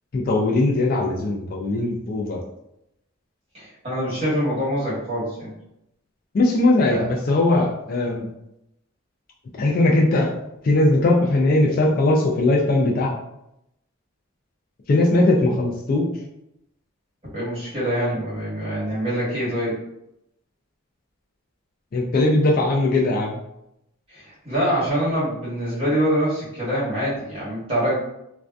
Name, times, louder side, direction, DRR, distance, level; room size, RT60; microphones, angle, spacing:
voice 1, 0.1-2.4 6.3-8.3 9.6-10.3 10.6-13.1 14.9-16.1 21.9-23.4, left 2 dB, 45° left, -1 dB, 0.3 m, -19 dB
voice 2, 3.5-5.5 6.9-7.1 17.3-19.7 24.1-27.9, equal, 25° right, -9 dB, 1.2 m, -25 dB
2.5 x 2.2 x 2.2 m, 0.83 s
head